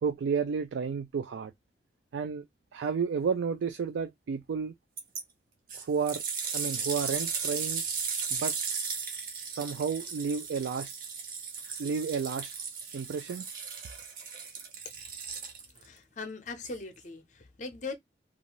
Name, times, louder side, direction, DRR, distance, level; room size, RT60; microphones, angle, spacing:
voice 1, 0.0-1.5 2.1-2.5 2.7-4.7 5.7-6.2 6.5-7.8 8.3-8.6 9.5-10.9 11.8-12.5 12.9-13.4, right 6 dB, 80° right, 0.3 m, -31 dB
sound 1, 5.0-5.2 5.7-15.9 16.6-16.7, right 5 dB, 50° right, 0.7 m, -36 dB
voice 2, 15.7-18.0, left 3 dB, 40° left, 0.6 m, -40 dB
2.6 x 2.3 x 2.9 m
head